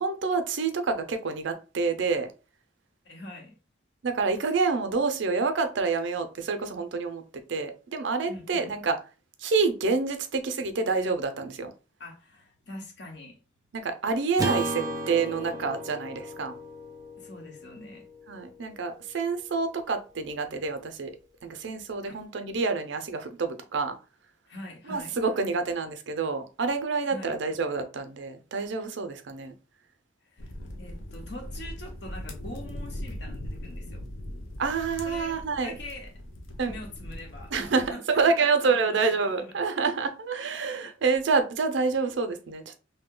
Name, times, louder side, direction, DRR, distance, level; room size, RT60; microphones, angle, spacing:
voice 1, 0.0-2.3 4.0-7.2 7.5-9.0 9.4-11.7 13.7-16.5 18.3-21.1 21.4-23.9 24.9-29.5 34.6-35.8 36.6-36.8 37.5-42.8, right 4 dB, 70° right, 0.5 m, -28 dB
voice 2, 3.0-3.6 8.3-8.7 12.0-13.4 17.2-18.0 22.0-22.2 24.5-25.1 27.1-27.4 30.2-34.0 35.0-35.4 35.6-36.1 36.7-39.9 40.4-41.0, left 1 dB, 60° left, 0.9 m, -44 dB
Acoustic guitar / Strum, 14.4-18.8, right 1 dB, 20° right, 0.5 m, -35 dB
sound 1, 30.4-37.9, left 1 dB, 80° left, 0.6 m, -40 dB
2.7 x 2.1 x 3.7 m
head